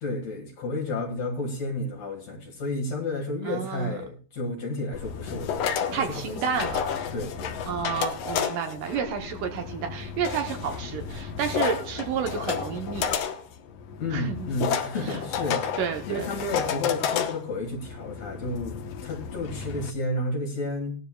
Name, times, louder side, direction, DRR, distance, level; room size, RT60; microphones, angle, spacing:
voice 1, 0.0-6.4 7.1-7.6 7.8-8.0 14.0-15.6 16.1-20.9, left 2 dB, 50° left, 2 dB, 2.5 m, -31 dB
voice 2, 3.4-4.0 5.9-6.8 7.7-13.1 14.1-14.5 14.9-15.2 15.8-16.3, right 7 dB, 70° right, 4 dB, 2.2 m, -31 dB
sound 1, 4.9-19.9, left 7 dB, 80° left, 1.5 m, -31 dB
19.0 x 12.5 x 2.2 m, 0.39 s
omnidirectional pair, 4.3 m